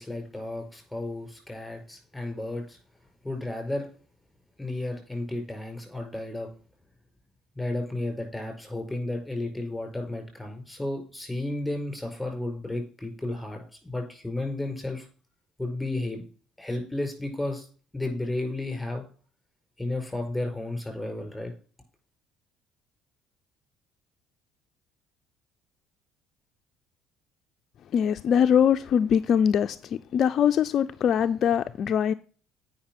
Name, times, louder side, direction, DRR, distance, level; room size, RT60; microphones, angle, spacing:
voice 1, 0.0-2.8 3.2-3.9 4.6-6.5 7.6-15.1 15.6-16.2 16.6-17.7 17.9-19.0 19.8-21.5, left 2 dB, 5° left, 4.7 m, -33 dB
voice 2, 27.9-32.1, left 8 dB, 55° left, 0.4 m, -22 dB
8.7 x 5.6 x 5.9 m
supercardioid pair, 75°, 0 cm